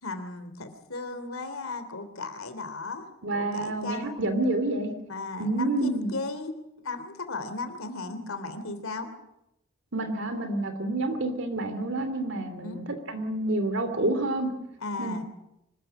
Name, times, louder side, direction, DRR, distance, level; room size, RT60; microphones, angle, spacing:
voice 1, 0.0-4.1 5.1-6.5 6.8-9.1 12.6-12.8 14.8-15.2, left 3 dB, 90° left, 8 dB, 3.2 m, -36 dB
voice 2, 3.2-4.9 5.4-6.1 9.9-14.5 15.0-15.2, right 2 dB, 60° right, 9 dB, 2.9 m, -28 dB
25.5 x 14.5 x 9.9 m, 0.86 s
head